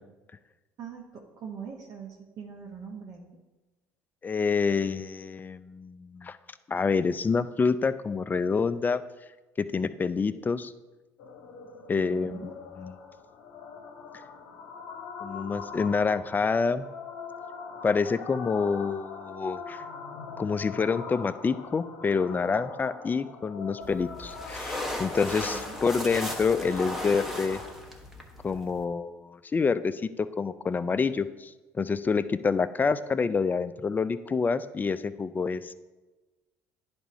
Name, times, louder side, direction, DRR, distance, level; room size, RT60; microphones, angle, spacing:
voice 1, 0.8-3.2 11.9-12.6 25.4-25.9, right 6 dB, 55° right, 0 dB, 0.9 m, -42 dB
voice 2, 4.2-6.4 6.7-9.0 9.6-10.7 11.9-12.4 12.8-12.9 15.2-16.9 17.8-19.8 20.4-27.6 28.4-35.7, left 5 dB, 25° left, 13 dB, 0.4 m, -27 dB
sound 1, 11.2-27.7, left 5 dB, 70° left, 0.8 m, -43 dB
sound 2, 23.8-28.8, left 1 dB, 5° right, 1.1 m, -36 dB
10.0 x 3.5 x 4.1 m, 1.1 s
hypercardioid pair, 65°, 8 cm